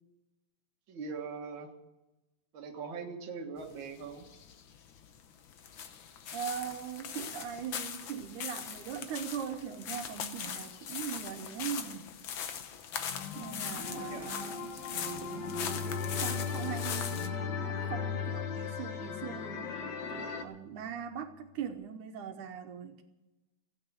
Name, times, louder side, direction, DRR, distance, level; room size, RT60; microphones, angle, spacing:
voice 1, 0.9-1.7 2.5-4.3 13.9-14.3, right 5 dB, 45° right, 1.9 m, -41 dB
sound 1, 3.6-17.3, left 8 dB, 90° left, 1.1 m, -41 dB
voice 2, 6.3-12.1 13.4-15.6 16.1-23.0, right 8 dB, 75° right, 2.3 m, -41 dB
sound 2, 13.0-20.4, left 5 dB, 55° left, 1.2 m, -40 dB
Bowed string instrument, 15.0-20.2, left 7 dB, 25° left, 4.8 m, -38 dB
16.0 x 9.0 x 9.5 m
omnidirectional pair, 3.6 m